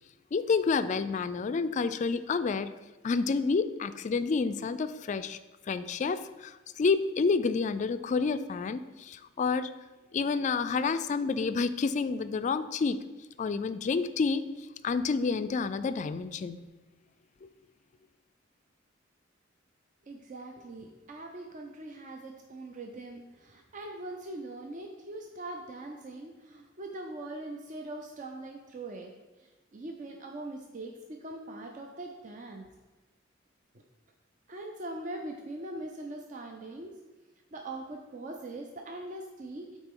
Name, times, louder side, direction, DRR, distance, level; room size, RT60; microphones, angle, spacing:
voice 1, 0.3-2.7 3.0-5.4 5.7-9.7 10.1-13.0 13.4-14.4 14.8-16.6, left 4 dB, 40° left, 11 dB, 0.3 m, -29 dB
voice 2, 20.0-29.1 29.4-32.7 34.5-37.0 37.5-39.8, right 2 dB, 40° right, 2 dB, 0.5 m, -42 dB
8.8 x 4.1 x 3.7 m, 1.2 s
head